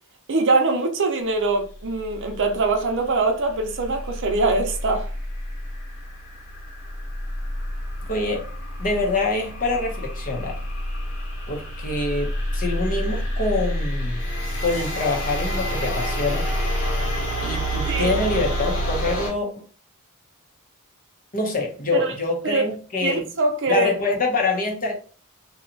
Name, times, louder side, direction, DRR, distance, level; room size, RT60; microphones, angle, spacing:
voice 1, 0.3-5.1 17.9-18.1 21.9-22.1 22.4-22.7 23.0-23.9, right 3 dB, 55° right, 0.6 m, -23 dB
sound 1, 1.6-19.3, equal, 70° left, 1.5 m, -28 dB
voice 2, 8.1-8.5 8.8-10.6 11.5-14.2 14.6-16.5 17.4-19.6 21.3-23.3 23.7-24.9, left 3 dB, 40° left, 0.8 m, -25 dB
2.8 x 2.3 x 3.8 m
head